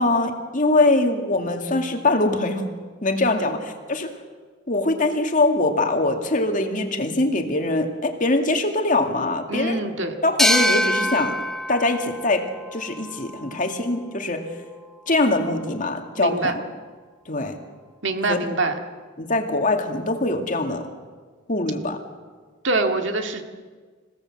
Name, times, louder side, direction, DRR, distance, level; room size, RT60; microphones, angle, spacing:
voice 1, 0.0-2.6 3.0-4.1 4.7-9.8 10.2-11.4 11.7-14.5 15.1-16.6 17.3-17.6 18.3-18.4 19.2-20.9 21.5-22.0, left 2 dB, 40° left, 4 dB, 2.3 m, -23 dB
voice 2, 9.5-10.1 16.2-16.5 18.0-18.8 22.6-23.4, right 2 dB, 65° right, 5 dB, 2.2 m, -24 dB
sound 1, 10.4-13.8, left 1 dB, ahead, 1.4 m, -25 dB
27.0 x 17.0 x 7.8 m, 1.5 s
head